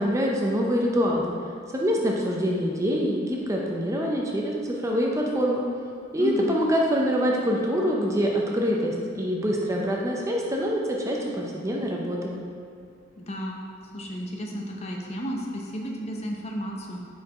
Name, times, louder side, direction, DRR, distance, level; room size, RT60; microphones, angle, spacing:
voice 1, 0.0-1.3 1.7-5.6 6.1-12.4, equal, 15° right, -2 dB, 0.5 m, -25 dB
voice 2, 6.2-6.5 13.2-13.6 13.9-17.0, equal, 35° left, -1 dB, 0.6 m, -32 dB
4.6 x 4.4 x 4.7 m, 2.3 s
head